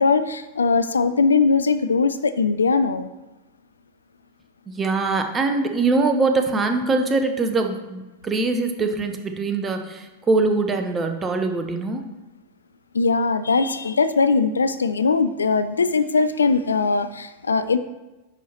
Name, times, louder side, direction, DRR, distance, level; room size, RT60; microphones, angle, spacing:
voice 1, 0.0-3.1 12.9-17.8, left 4 dB, 75° left, 12 dB, 0.3 m, -20 dB
voice 2, 4.7-12.0, right 3 dB, 20° right, 5 dB, 0.8 m, -23 dB
9.8 x 4.6 x 2.9 m, 1.1 s
figure-of-eight pair, 90°, 0 cm